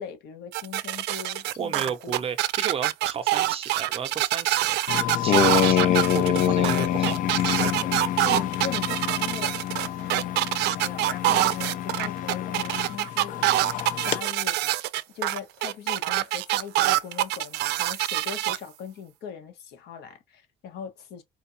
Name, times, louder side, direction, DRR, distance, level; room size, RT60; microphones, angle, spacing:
voice 1, 0.0-2.2 7.6-14.6 15.1-21.2, left 7 dB, 85° left, 1.2 m, -40 dB
sound 1, 0.5-18.6, right 16 dB, 85° right, 0.4 m, -25 dB
voice 2, 1.6-4.8 5.2-7.2, right 7 dB, 35° right, 0.6 m, -33 dB
sound 2, 4.9-14.2, left 11 dB, 55° left, 0.4 m, -26 dB
4.4 x 2.3 x 2.7 m
cardioid pair, 150°, 17 cm